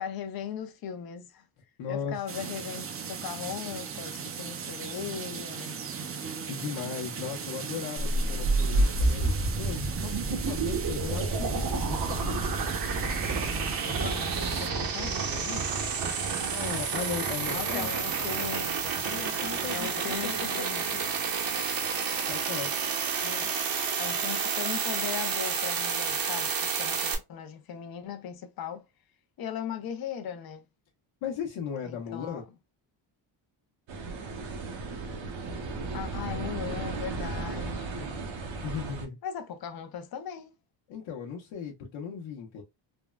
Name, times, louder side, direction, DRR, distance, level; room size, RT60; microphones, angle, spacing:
voice 1, 0.0-1.5 1.9-5.9 13.8-15.7 17.5-18.8 19.7-20.5 20.9-21.1 23.2-23.5 24.0-28.8 29.4-30.6 31.8-32.4 35.9-38.3 39.2-40.5, left 8 dB, 50° left, 0.6 m, -38 dB
voice 2, 1.8-2.2 6.4-12.4 16.5-17.9 19.0-20.8 22.3-22.7 31.2-32.4 38.6-39.2 40.9-42.6, left 7 dB, 85° left, 0.9 m, -37 dB
sound 1, 2.3-14.7, right 6 dB, 30° right, 0.4 m, -37 dB
sound 2, 8.0-27.2, right 4 dB, 50° right, 0.8 m, -29 dB
sound 3, 33.9-39.1, right 3 dB, 75° right, 0.9 m, -35 dB
3.5 x 2.1 x 2.2 m
cardioid pair, 135°, 46 cm